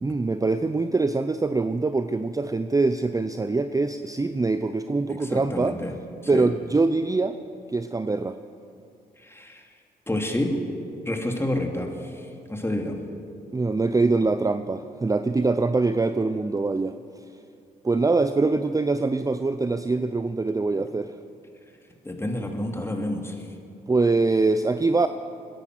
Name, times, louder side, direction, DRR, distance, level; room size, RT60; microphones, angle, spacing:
voice 1, 0.0-5.7 6.3-7.4 7.7-8.4 13.5-16.9 17.8-21.1 23.9-25.1, right 3 dB, 20° right, 10 dB, 0.6 m, -23 dB
voice 2, 5.1-5.9 6.3-6.5 9.2-9.6 10.1-10.6 11.0-13.0 22.0-23.5, left 1 dB, 15° left, 3 dB, 2.7 m, -29 dB
22.0 x 10.5 x 6.1 m, 2.4 s
supercardioid pair, 50°, 18 cm